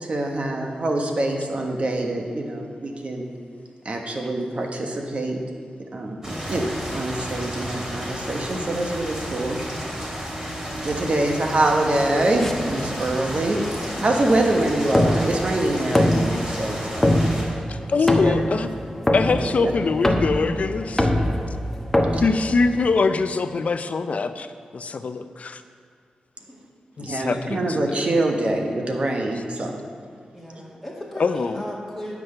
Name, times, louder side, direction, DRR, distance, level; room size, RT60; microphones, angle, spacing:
voice 1, 0.0-3.3 3.8-5.4 5.9-9.6 10.8-13.6 14.0-17.1 18.2-18.4 19.4-19.7 22.1-22.2 27.0-29.8, right 2 dB, 50° right, 1 dB, 1.3 m, -25 dB
sound 1, 6.2-17.4, equal, 25° right, 2.8 m, -32 dB
sound 2, 12.4-23.1, left 1 dB, 10° left, 0.9 m, -24 dB
voice 2, 16.1-16.8 17.7-18.7 19.1-21.1 22.2-24.5 24.7-25.6 27.0-28.0 31.2-31.6, left 4 dB, 55° left, 10 dB, 0.5 m, -23 dB
voice 3, 30.3-32.1, equal, 5° right, -5 dB, 2.0 m, -36 dB
9.3 x 6.1 x 6.6 m, 2.1 s
wide cardioid pair, 85°, 3 cm